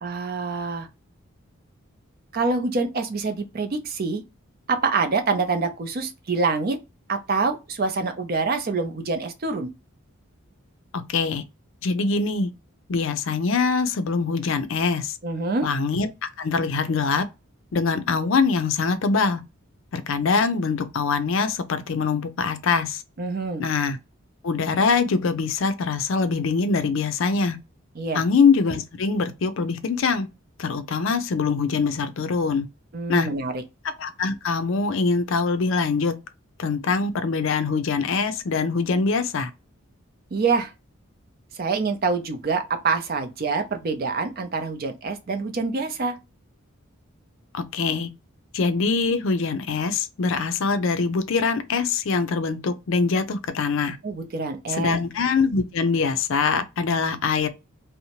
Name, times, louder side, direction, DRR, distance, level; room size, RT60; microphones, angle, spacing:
voice 1, 0.0-0.9 2.3-4.2 4.7-6.8 7.1-9.7 15.2-15.7 23.2-23.7 28.0-28.2 32.9-33.6 40.3-40.7 41.5-46.2 54.0-55.0, right 4 dB, 45° right, 0.5 m, -26 dB
voice 2, 11.1-11.4 11.8-12.5 12.9-15.2 15.6-17.3 17.7-19.4 19.9-23.0 23.6-24.0 24.4-27.6 28.1-30.3 30.6-32.7 33.1-33.3 34.0-36.1 36.6-39.5 47.5-48.1 48.5-54.0 54.7-57.5, left 4 dB, 65° left, 0.4 m, -23 dB
2.7 x 2.1 x 2.8 m
head